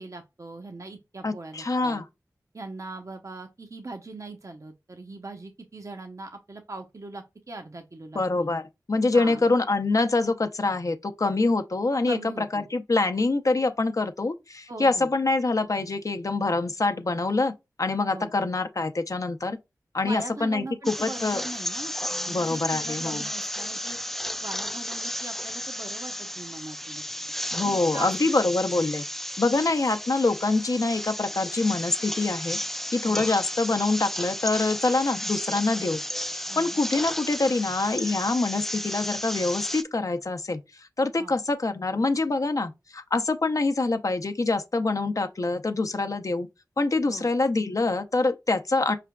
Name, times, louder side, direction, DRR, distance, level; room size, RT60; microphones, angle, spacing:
voice 1, 0.0-2.0 2.5-8.5 9.1-9.5 12.1-12.7 14.7-15.1 18.1-18.3 20.0-24.0 24.4-27.0 27.6-28.1 33.0-33.3 36.5-36.8 41.2-41.4 47.1-47.3, right 2 dB, 50° right, 0.7 m, -40 dB
voice 2, 1.2-2.0 8.1-17.5 17.8-19.6 19.9-21.4 22.3-23.2 27.5-29.0 29.4-32.6 32.9-36.0 36.3-46.5 46.8-49.0, left 3 dB, 50° left, 0.6 m, -25 dB
sound 1, 20.8-39.8, equal, 5° left, 0.4 m, -33 dB
4.9 x 3.3 x 2.2 m
wide cardioid pair, 50°, 7 cm